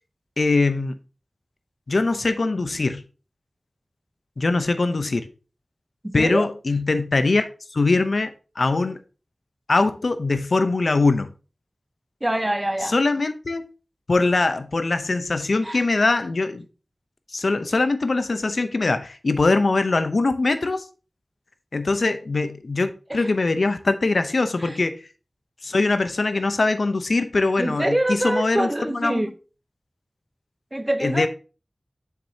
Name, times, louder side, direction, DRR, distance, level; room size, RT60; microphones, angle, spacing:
voice 1, 0.4-1.0 1.9-3.0 4.4-5.3 6.1-7.5 7.7-9.0 9.7-11.3 12.9-13.7 14.1-16.7 17.3-20.8 21.7-25.0 25.6-29.2 31.0-31.3, left 3 dB, 80° left, 0.7 m, -22 dB
voice 2, 6.0-6.5 12.2-13.0 15.6-15.8 23.1-23.3 24.6-24.8 27.6-29.3 30.7-31.3, right 1 dB, 25° right, 0.7 m, -25 dB
7.3 x 6.0 x 2.8 m
wide cardioid pair, 50°, 0 cm